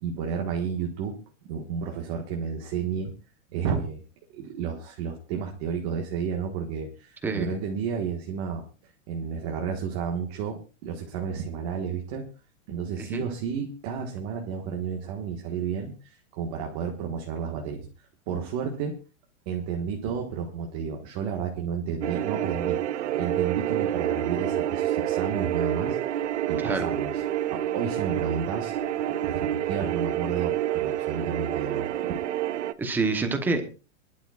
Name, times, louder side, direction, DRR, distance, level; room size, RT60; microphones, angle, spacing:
voice 1, 0.0-3.1 3.5-4.0 4.3-8.6 9.1-12.3 12.7-17.9 18.3-19.0 19.4-22.8 23.1-27.2 27.5-28.8 29.1-32.2, right 6 dB, 30° right, 1 dB, 1.6 m, -32 dB
sound 1, 22.0-32.7, right 12 dB, 65° right, 0.9 m, -28 dB
voice 2, 32.8-33.6, right 3 dB, 5° right, 6 dB, 0.9 m, -26 dB
26.0 x 11.5 x 2.4 m, 0.33 s
supercardioid pair, 175°, 38 cm